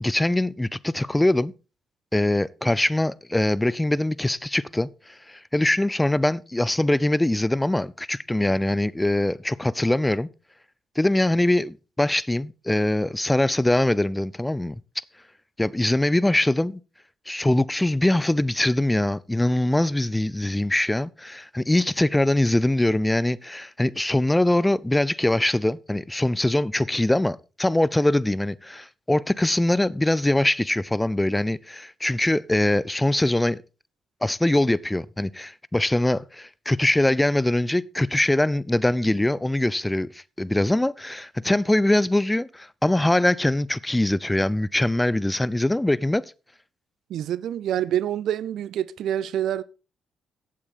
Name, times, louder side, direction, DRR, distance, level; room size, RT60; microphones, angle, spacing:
voice 1, 0.0-1.5 2.1-10.3 11.0-14.8 15.6-16.8 17.3-33.6 34.2-46.3, left 1 dB, 15° left, 0.7 m, -23 dB
voice 2, 47.1-49.6, right 11 dB, 70° right, 0.6 m, -26 dB
15.5 x 8.5 x 4.2 m
hypercardioid pair, 45°, 0 cm